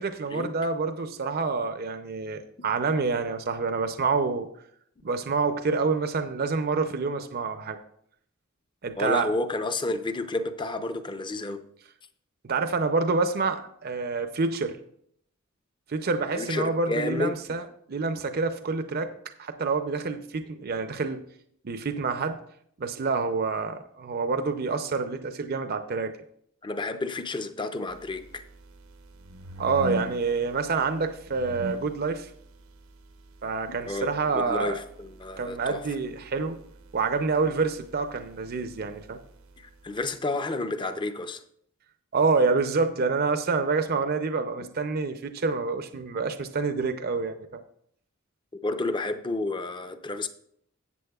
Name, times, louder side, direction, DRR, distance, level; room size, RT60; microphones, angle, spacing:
voice 1, 0.0-4.5 5.0-7.8 8.8-9.3 12.4-14.7 15.9-17.6 17.9-19.1 19.4-21.2 21.6-22.4 22.8-26.1 29.6-32.3 33.4-34.8 35.4-36.6 36.9-39.2 42.1-47.6, right 4 dB, 50° right, 8 dB, 0.6 m, -27 dB
voice 2, 9.0-11.6 16.3-17.3 26.6-28.4 33.9-34.1 34.3-35.8 39.8-41.4 44.6-44.7 48.6-50.3, left 2 dB, 25° left, 8 dB, 0.6 m, -30 dB
sound 1, 27.9-40.1, equal, 90° right, 0.9 m, -43 dB
13.0 x 8.4 x 2.3 m, 0.67 s
head